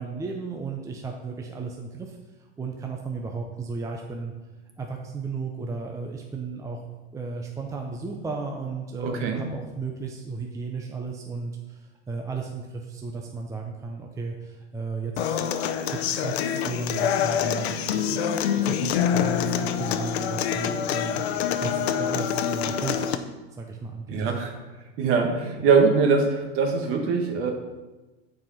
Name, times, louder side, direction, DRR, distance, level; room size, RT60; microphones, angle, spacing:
voice 1, 0.0-2.2 2.6-4.3 4.8-6.8 7.1-15.4 15.9-23.2 23.5-24.2, right 4 dB, 10° right, 1 dB, 0.7 m, -34 dB
voice 2, 9.0-9.4 24.1-24.5 25.0-27.5, right 5 dB, 45° right, 4 dB, 1.6 m, -22 dB
Human voice / Acoustic guitar, 15.2-23.1, left 8 dB, 90° left, 0.7 m, -26 dB
10.5 x 4.9 x 5.7 m, 1.2 s
supercardioid pair, 135°, 31 cm